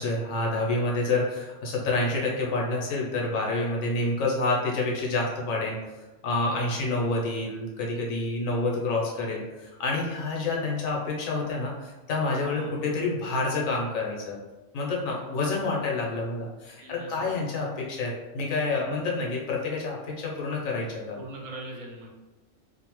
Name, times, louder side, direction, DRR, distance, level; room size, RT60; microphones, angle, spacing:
voice 1, 0.0-5.8 6.2-14.4 14.7-21.2, left 2 dB, 85° left, -2 dB, 1.1 m, -28 dB
voice 2, 6.4-7.1 12.5-12.7 15.1-15.2 15.6-16.0 16.8-17.4 21.2-22.1, right 2 dB, 80° right, -1 dB, 1.0 m, -43 dB
2.8 x 2.0 x 3.0 m, 1.1 s
omnidirectional pair, 1.4 m